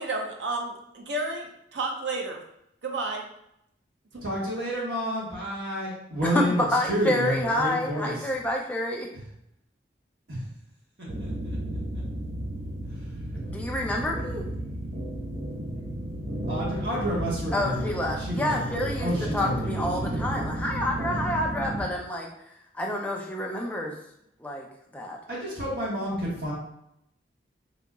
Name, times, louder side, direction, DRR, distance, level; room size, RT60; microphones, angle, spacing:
voice 1, 0.0-2.4 2.8-3.2 4.1-4.2, right 2 dB, 80° right, 1 dB, 0.6 m, -31 dB
voice 2, 4.2-8.3 10.3-10.4 11.0-11.6 12.9-13.1 16.5-20.4 25.3-26.5, equal, 55° right, -6 dB, 1.4 m, -30 dB
voice 3, 6.7-9.1 13.5-14.5 17.5-22.3 22.7-24.0 24.4-24.7 24.9-25.2, left 1 dB, 10° left, -1 dB, 0.4 m, -28 dB
sound 1, 11.1-21.8, right 1 dB, 40° right, 0.6 m, -33 dB
4.0 x 2.8 x 2.3 m, 0.77 s
head